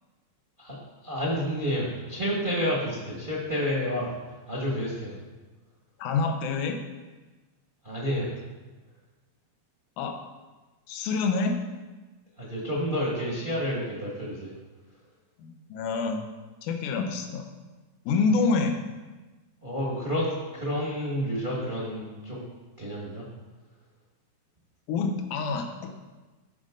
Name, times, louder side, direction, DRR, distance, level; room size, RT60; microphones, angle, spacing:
voice 1, 0.6-4.1 4.5-5.2 7.8-8.3 12.4-14.5 19.6-22.4 22.8-23.2, equal, 30° right, -4 dB, 0.8 m, -30 dB
voice 2, 6.0-6.8 10.0-10.2 10.9-11.6 15.4-16.2 16.6-17.5 18.1-18.8 24.9-25.9, left 4 dB, 80° left, 4 dB, 2.3 m, -27 dB
13.5 x 5.3 x 3.8 m, 1.2 s
omnidirectional pair, 3.6 m